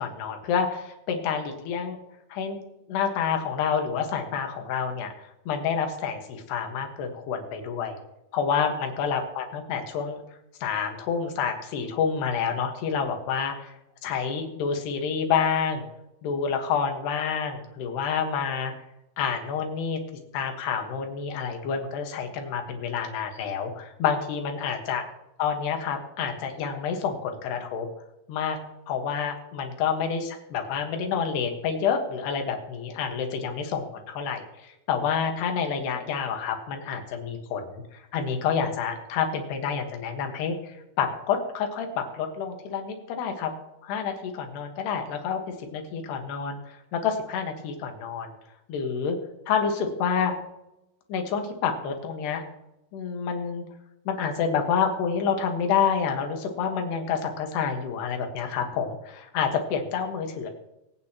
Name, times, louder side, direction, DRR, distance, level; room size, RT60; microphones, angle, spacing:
voice 1, 0.0-2.0 2.3-2.6 2.9-5.1 5.5-8.0 8.3-10.2 10.6-13.7 14.0-15.9 16.2-18.7 19.2-20.0 20.3-25.0 25.4-27.9 28.3-28.6 28.9-43.5 43.8-48.3 48.7-49.2 49.5-50.4 51.1-52.4 52.9-53.7 54.1-60.5, left 6 dB, 85° left, 4 dB, 3.6 m, -28 dB
24.0 x 8.7 x 2.9 m, 0.91 s
omnidirectional pair, 4.6 m